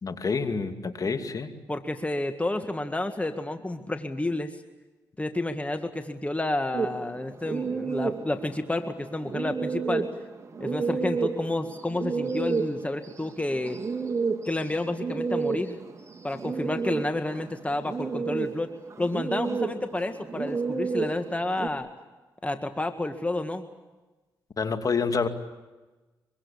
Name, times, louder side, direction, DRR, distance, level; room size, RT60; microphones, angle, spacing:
voice 1, 0.0-1.5 24.6-25.3, left 5 dB, 45° left, 8 dB, 2.6 m, -27 dB
voice 2, 1.7-4.5 5.2-10.1 10.6-13.8 14.5-15.8 16.2-18.7 19.0-21.9 22.4-23.7, left 2 dB, 15° left, 8 dB, 1.9 m, -30 dB
sound 1, 6.7-21.7, right 4 dB, 40° right, 2.6 m, -31 dB
24.5 x 24.0 x 8.6 m, 1.2 s
cardioid pair, 65°, 8 cm